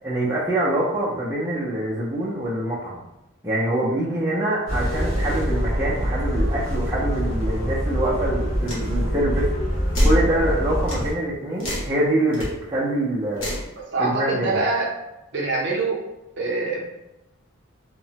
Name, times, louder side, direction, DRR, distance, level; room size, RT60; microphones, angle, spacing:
voice 1, 0.0-3.0 3.4-9.5 10.0-13.5 14.0-14.7, right 1 dB, 15° right, -6 dB, 0.5 m, -25 dB
sound 1, 4.7-11.1, equal, 50° left, 1.5 m, -25 dB
sound 2, 8.7-8.9 9.9-10.2 10.9-11.1 11.6-11.9 12.3-12.5 13.4-13.7, equal, 80° left, 1.0 m, -23 dB
voice 2, 13.9-14.9 15.3-16.0 16.4-16.8, right 3 dB, 60° right, -3 dB, 0.6 m, -24 dB
2.8 x 2.1 x 2.7 m, 0.92 s
head